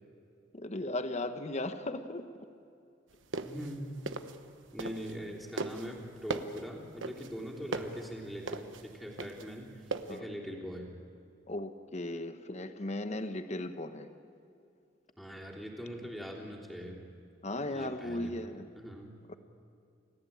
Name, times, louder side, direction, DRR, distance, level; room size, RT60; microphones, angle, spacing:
voice 1, 0.5-2.3 10.1-10.2 11.5-14.1 17.4-18.7 19.3-19.4, left 1 dB, 35° left, 9 dB, 1.0 m, -37 dB
sound 1, 3.1-5.3 5.6-10.2, right 3 dB, 90° right, 1.1 m, -38 dB
voice 2, 3.4-4.0 4.7-9.8 10.1-10.9 15.2-17.1 17.6-19.1, equal, ahead, -3 dB, 3.3 m, -42 dB
29.5 x 14.5 x 8.7 m, 2.5 s
head